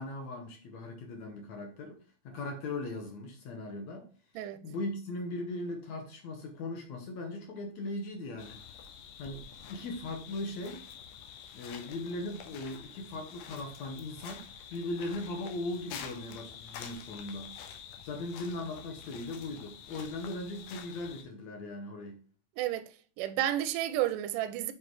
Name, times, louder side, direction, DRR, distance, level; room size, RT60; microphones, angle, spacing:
voice 1, 0.0-2.0 2.2-4.1 4.6-8.6 9.2-9.4 9.7-10.8 11.5-17.5 18.0-22.2, left 2 dB, 65° left, 2.0 m, -39 dB
sound 1, 8.4-21.2, left 8 dB, 85° left, 2.7 m, -48 dB
voice 2, 22.6-22.9 23.2-24.7, right 12 dB, 80° right, 2.0 m, -31 dB
7.4 x 4.2 x 4.7 m
omnidirectional pair, 4.1 m